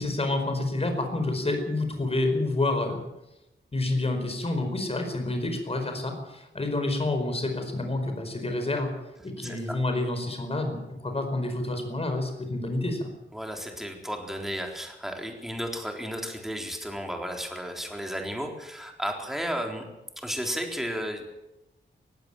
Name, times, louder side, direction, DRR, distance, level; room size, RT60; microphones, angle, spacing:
voice 1, 0.0-3.0 3.7-8.9 9.2-10.8 11.0-13.1, left 2 dB, 30° left, 5 dB, 4.9 m, -28 dB
voice 2, 9.4-9.8 13.3-19.9 20.2-21.2, equal, ahead, 2 dB, 4.0 m, -33 dB
19.0 x 16.5 x 9.1 m, 0.94 s
wide cardioid pair, 120°, 20 cm